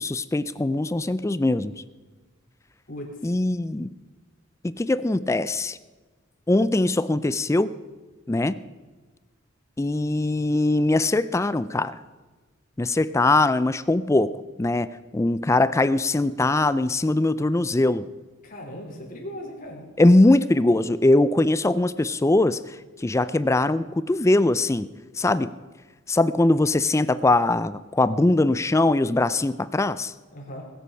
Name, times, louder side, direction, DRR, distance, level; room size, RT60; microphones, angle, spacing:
voice 1, 0.0-1.8 3.2-3.9 4.6-5.8 6.5-7.8 8.3-8.6 9.8-12.0 12.8-18.1 20.0-24.9 25.2-25.5 26.1-30.1, left 2 dB, 15° left, 15 dB, 0.3 m, -21 dB
voice 2, 2.9-3.3 18.4-19.8 30.3-30.6, equal, 40° left, -1 dB, 3.6 m, -38 dB
20.5 x 8.3 x 5.6 m, 1.3 s
head